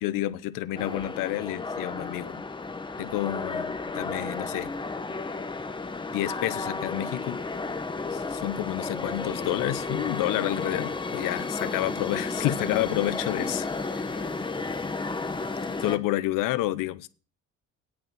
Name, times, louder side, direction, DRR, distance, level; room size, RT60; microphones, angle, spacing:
voice 1, 0.0-2.4 3.0-4.7 6.1-7.4 8.4-14.0 15.8-17.1, left 15 dB, 80° left, 0.7 m, -29 dB
sound 1, 0.8-16.0, left 3 dB, 15° left, 0.9 m, -33 dB
voice 2, 14.0-15.6, left 6 dB, 65° left, 3.1 m, -51 dB
8.7 x 6.0 x 7.5 m
cardioid pair, 110°, 32 cm